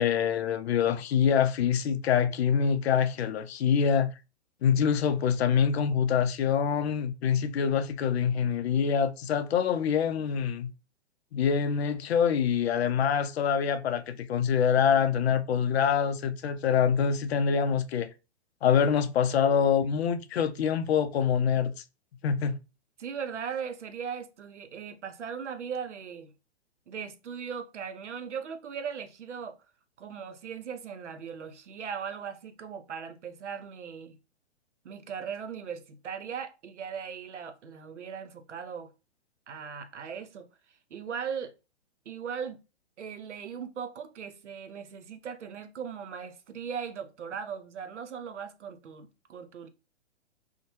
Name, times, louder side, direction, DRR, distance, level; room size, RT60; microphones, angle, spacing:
voice 1, 0.0-4.1 4.6-10.7 11.3-18.1 18.6-21.7 22.2-22.6, left 7 dB, 65° left, 0.5 m, -25 dB
voice 2, 23.0-26.3 26.9-29.6 30.0-34.2 34.8-38.9 39.5-40.5 40.9-41.5 42.1-42.6 43.0-49.7, right 7 dB, 85° right, 0.6 m, -38 dB
2.7 x 2.1 x 2.9 m
figure-of-eight pair, 120°, 35 cm